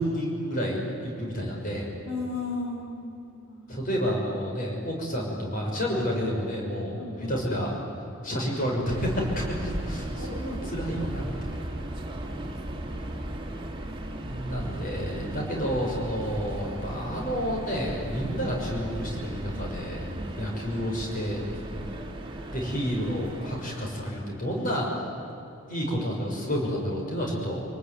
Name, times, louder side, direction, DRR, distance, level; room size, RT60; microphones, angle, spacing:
voice 1, 0.0-1.9 3.7-7.7 8.2-11.6 14.1-20.0 20.4-21.4 22.5-24.9 25.7-27.6, equal, 40° left, -1 dB, 6.3 m, -30 dB
voice 2, 2.1-3.7 7.0-7.5 10.2-10.4 12.2-13.1 15.3-15.5 18.2-18.4 20.1-20.5 21.8-22.0, left 3 dB, 80° left, 0 dB, 5.1 m, -37 dB
Subway metro underground, 8.8-24.2, right 1 dB, 25° right, 2.2 m, -36 dB
28.5 x 20.0 x 9.6 m, 2.9 s
head